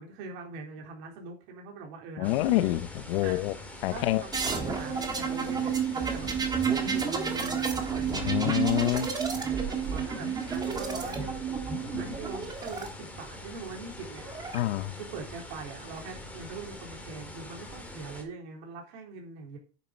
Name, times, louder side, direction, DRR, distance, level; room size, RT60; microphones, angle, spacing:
voice 1, 0.0-2.7 3.2-3.4 3.9-6.3 6.7-8.5 9.4-11.6 12.0-14.3 15.0-19.6, right 4 dB, 50° right, 3.7 m, -42 dB
voice 2, 2.2-3.5 3.8-4.2 8.1-9.1 11.9-12.0 14.5-14.9, left 16 dB, 70° left, 0.9 m, -27 dB
sound 1, 2.2-18.2, left 1 dB, 5° left, 1.9 m, -44 dB
sound 2, 4.3-12.9 14.0-14.6, right 6 dB, 10° right, 1.5 m, -31 dB
9.5 x 7.1 x 5.3 m
supercardioid pair, 160°, 32 cm